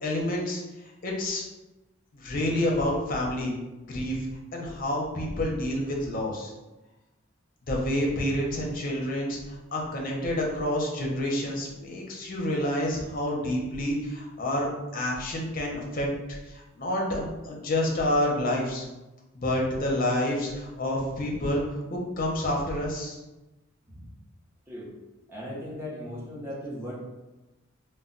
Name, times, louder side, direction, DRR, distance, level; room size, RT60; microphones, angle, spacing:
voice 1, 0.0-0.6 1.0-1.4 2.1-3.5 3.8-4.2 4.5-6.5 7.7-18.8 19.3-21.6 21.9-23.2, left 1 dB, 45° left, -1 dB, 0.6 m, -28 dB
voice 2, 25.3-27.0, equal, 10° right, -6 dB, 0.7 m, -37 dB
2.2 x 2.1 x 3.7 m, 1.1 s
head